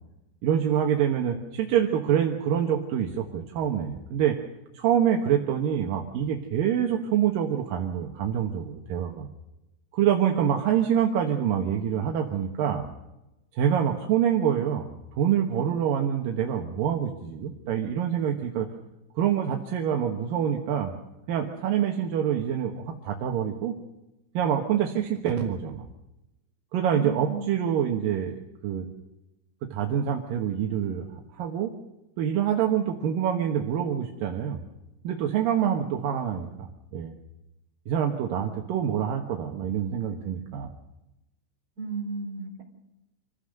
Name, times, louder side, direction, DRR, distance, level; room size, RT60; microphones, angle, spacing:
voice 1, 0.4-4.4 4.7-9.3 9.9-12.8 13.5-14.9 15.2-18.7 19.2-20.9 21.3-23.8 24.3-25.8 26.7-28.3 28.6-28.8 29.7-31.0 31.4-31.7 32.2-34.6 35.0-36.7 36.9-37.1 37.9-40.7, right 9 dB, 65° right, 2 dB, 2.6 m, -26 dB
voice 2, 27.0-27.6 41.8-42.6, right 4 dB, 40° right, -1 dB, 5.4 m, -33 dB
26.5 x 16.0 x 6.6 m, 0.96 s
omnidirectional pair, 5.2 m